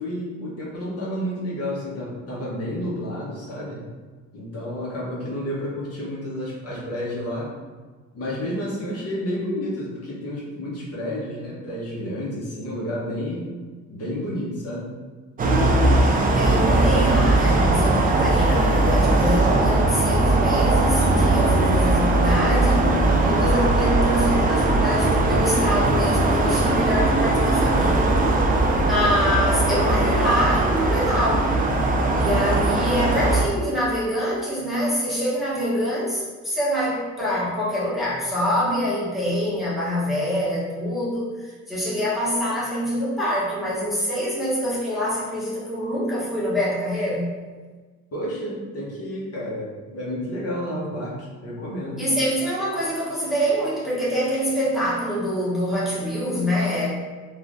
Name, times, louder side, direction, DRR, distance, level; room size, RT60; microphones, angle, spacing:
voice 1, 0.0-3.8 4.3-7.5 8.1-13.5 13.9-14.9 32.2-32.8 48.1-52.1, equal, 50° left, -6 dB, 0.9 m, -30 dB
sound 1, 15.4-33.5, right 2 dB, 30° right, 0.4 m, -19 dB
voice 2, 16.3-22.9 23.2-28.1 28.7-31.5 32.2-47.3 52.0-56.9, equal, ahead, -9 dB, 1.0 m, -25 dB
2.9 x 2.4 x 2.5 m, 1.4 s
cardioid pair, 90°, 30 cm